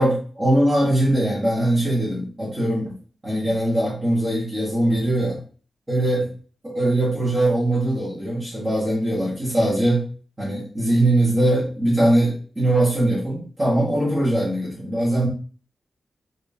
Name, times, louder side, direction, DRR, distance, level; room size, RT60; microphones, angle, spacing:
voice 1, 0.0-2.9 3.2-5.4 5.9-6.3 6.6-10.1 10.4-15.3, right 1 dB, 20° right, -10 dB, 1.7 m, -21 dB
4.8 x 2.8 x 3.4 m, 0.42 s
wide cardioid pair, 145°, 0 cm